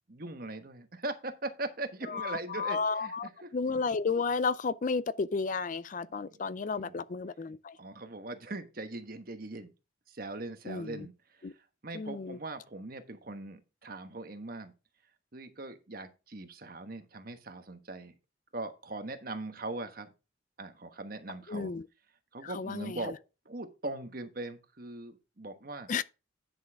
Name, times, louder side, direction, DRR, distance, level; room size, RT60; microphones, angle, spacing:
voice 1, 0.1-3.5 6.2-6.4 6.8-7.0 7.8-9.7 10.1-11.6 11.8-14.7 15.3-18.1 18.5-20.1 20.6-21.7 22.3-23.2 23.4-25.9, right 2 dB, 50° right, 1.2 m, -40 dB
voice 2, 2.1-7.8 10.7-11.1 11.4-11.5 11.9-12.4 21.5-21.8 22.4-23.0 25.9-26.0, left 4 dB, 40° left, 0.4 m, -32 dB
10.5 x 6.2 x 3.5 m
head